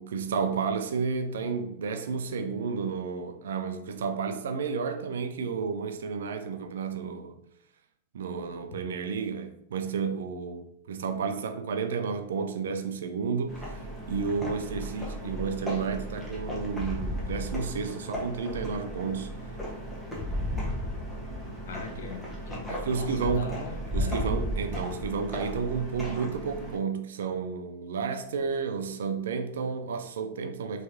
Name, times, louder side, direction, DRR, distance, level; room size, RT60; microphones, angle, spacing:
voice 1, 0.0-7.4 8.1-13.8 14.1-19.3 22.7-23.6 23.9-30.8, right 5 dB, 60° right, 0.4 m, -31 dB
sound 1, 13.5-26.8, equal, 5° left, 1.3 m, -35 dB
voice 2, 21.7-24.2, left 4 dB, 60° left, 0.7 m, -40 dB
4.5 x 3.2 x 2.8 m
figure-of-eight pair, 95°, 0 cm